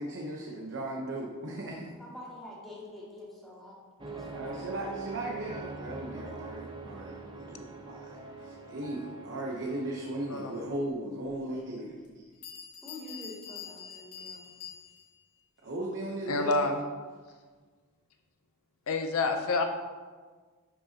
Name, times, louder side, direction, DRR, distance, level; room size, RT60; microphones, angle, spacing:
voice 1, 0.0-1.9 4.3-12.2 15.6-16.7, right 1 dB, 55° right, -1 dB, 0.9 m, -37 dB
voice 2, 2.0-3.8 4.1-4.9 12.8-14.5, left 1 dB, ahead, -8 dB, 2.4 m, -46 dB
sound 1, 4.0-10.8, right 3 dB, 20° right, 0.7 m, -43 dB
Bell, 12.0-12.1 12.4-15.2, left 7 dB, 85° left, 2.3 m, -45 dB
voice 3, 16.3-16.8 18.9-19.6, left 3 dB, 65° left, 5 dB, 0.7 m, -27 dB
11.5 x 5.3 x 2.9 m, 1.5 s
head